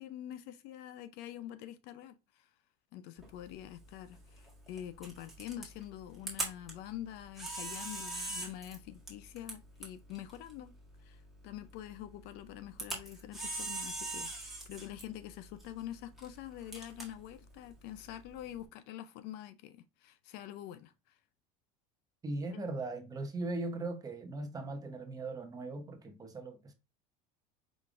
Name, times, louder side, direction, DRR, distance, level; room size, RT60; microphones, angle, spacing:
voice 1, 0.0-2.5 2.9-10.7 11.0-21.2 22.5-22.6, left 12 dB, 55° left, 0.5 m, -46 dB
Camera, 3.2-18.6, right 2 dB, ahead, 1.6 m, -44 dB
voice 2, 22.2-26.7, right 2 dB, 20° right, 0.8 m, -39 dB
5.0 x 3.3 x 2.4 m
supercardioid pair, 130°, 20 cm